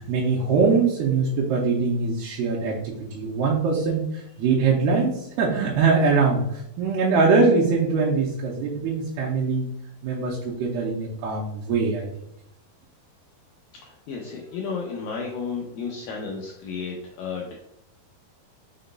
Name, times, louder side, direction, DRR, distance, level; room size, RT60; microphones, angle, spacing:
voice 1, 0.0-9.7 10.0-12.1, right 4 dB, 85° right, -5 dB, 2.6 m, -22 dB
voice 2, 13.8-17.5, left 5 dB, 80° left, -1 dB, 2.0 m, -33 dB
6.1 x 3.9 x 2.2 m, 0.80 s
omnidirectional pair, 4.6 m